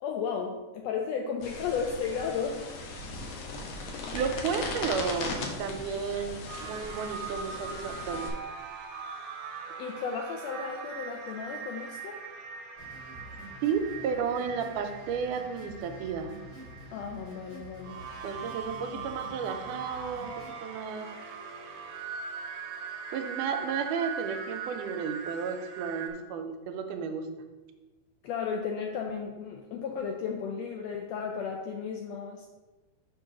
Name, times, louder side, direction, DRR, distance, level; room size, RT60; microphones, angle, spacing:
voice 1, 0.0-2.6 9.8-12.2 16.9-18.0 28.2-32.5, left 6 dB, 80° left, 2 dB, 1.5 m, -34 dB
sound 1, 1.4-8.3, left 3 dB, 65° left, 1.8 m, -38 dB
voice 2, 4.1-8.3 13.6-16.3 18.2-21.1 23.1-27.3, right 6 dB, 90° right, 6 dB, 2.2 m, -33 dB
sound 2, 6.5-26.1, right 6 dB, 75° right, 2.0 m, -41 dB
sound 3, 12.8-20.5, equal, 35° left, 1.9 m, -48 dB
6.2 x 3.8 x 5.9 m, 1.2 s
omnidirectional pair, 3.6 m